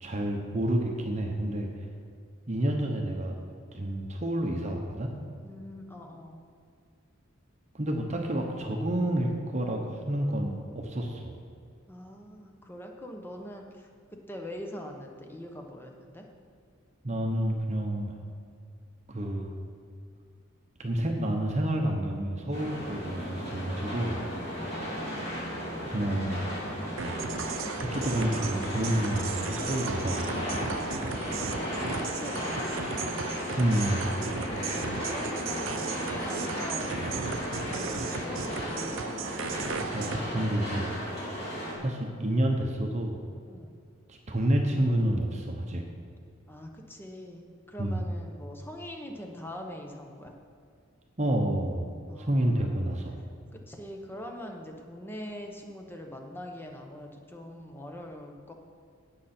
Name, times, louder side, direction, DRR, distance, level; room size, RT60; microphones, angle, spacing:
voice 1, 0.0-1.7 2.5-3.4 3.7-5.1 7.7-11.4 17.0-18.2 19.1-19.5 20.8-24.2 25.9-26.4 27.9-30.5 33.6-34.0 39.9-40.9 41.8-43.2 44.1-45.8 47.8-48.0 51.2-51.9 52.2-53.1, right 1 dB, 35° right, 2 dB, 0.9 m, -29 dB
voice 2, 5.4-6.5 11.9-16.3 24.5-24.7 31.4-33.2 34.5-38.9 43.5-43.7 46.5-50.3 52.1-52.9 53.5-58.5, left 1 dB, 10° left, 2 dB, 1.0 m, -43 dB
sound 1, 22.5-41.7, equal, 30° left, 3.3 m, -34 dB
sound 2, 27.0-40.2, right 5 dB, 70° right, 0.6 m, -36 dB
17.5 x 6.7 x 4.4 m, 2.3 s
head